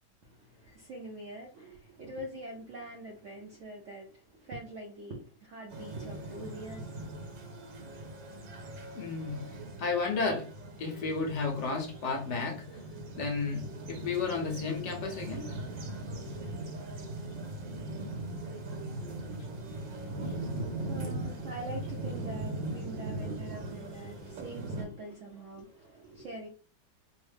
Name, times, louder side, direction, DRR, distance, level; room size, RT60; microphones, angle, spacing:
voice 1, 0.2-7.0 20.3-26.5, right 1 dB, 65° right, 0.7 m, -44 dB
sound 1, 5.7-24.8, right 1 dB, 80° right, 1.7 m, -40 dB
voice 2, 8.9-9.5 9.8-10.5 10.8-12.7 13.1-15.5, left 4 dB, 70° left, 1.4 m, -32 dB
3.8 x 2.0 x 3.2 m
omnidirectional pair, 2.0 m